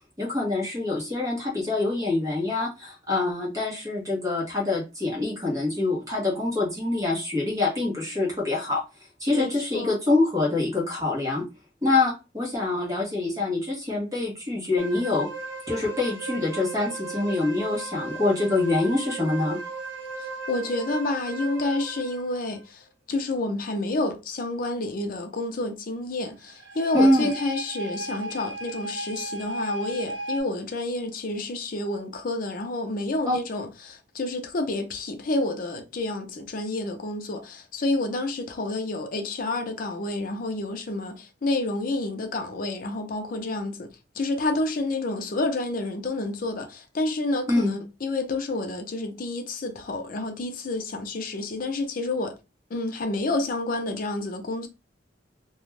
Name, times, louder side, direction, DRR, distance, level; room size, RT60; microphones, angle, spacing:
voice 1, 0.2-8.8 9.2-11.4 11.8-15.3 15.7-19.6 26.9-27.3 33.3-33.4 47.5-47.7, left 2 dB, 20° right, 1.0 m, -25 dB
voice 2, 9.3-10.0 20.2-52.3 52.7-54.7, left 2 dB, 50° left, 0.5 m, -29 dB
sound 1, 14.8-22.6 26.4-30.4, right 3 dB, 70° right, 0.7 m, -36 dB
2.4 x 2.2 x 3.2 m
head